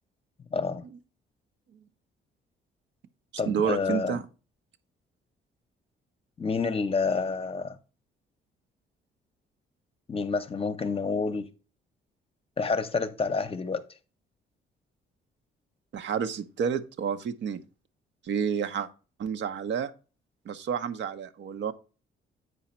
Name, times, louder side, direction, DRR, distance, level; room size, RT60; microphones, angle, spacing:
voice 1, 0.5-0.9 3.4-4.2 6.4-7.8 10.1-11.5 12.6-13.8, left 4 dB, 30° left, 0.8 m, -28 dB
voice 2, 3.5-4.2 15.9-17.6 18.2-18.9 19.2-19.9 20.5-21.7, right 7 dB, 65° right, 0.8 m, -30 dB
8.3 x 4.9 x 4.3 m
cardioid pair, 90°, 20 cm